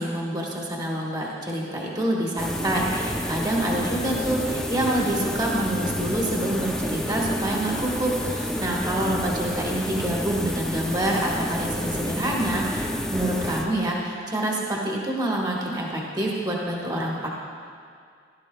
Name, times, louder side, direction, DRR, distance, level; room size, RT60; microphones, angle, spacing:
voice 1, 0.0-17.3, right 1 dB, 20° right, -3 dB, 1.3 m, -27 dB
sound 1, 2.4-14.0, equal, 5° left, 0.5 m, -30 dB
15.5 x 12.0 x 2.3 m, 2.2 s
head